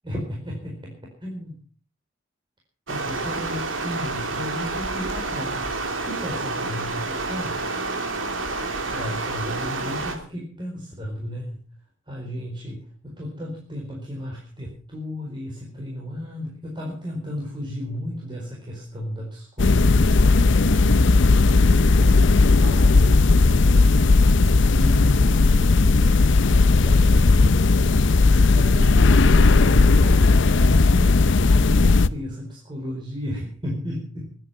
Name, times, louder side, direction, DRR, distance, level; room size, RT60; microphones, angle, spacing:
voice 1, 0.0-1.6 2.9-7.6 8.9-11.7 12.1-28.1 28.5-34.4, equal, 25° right, -2 dB, 4.5 m, -34 dB
Stream, 2.9-10.1, right 3 dB, 80° right, 3.0 m, -29 dB
sound 1, 19.6-32.1, left 3 dB, 65° left, 0.7 m, -16 dB
23.0 x 9.4 x 5.7 m, 0.41 s
head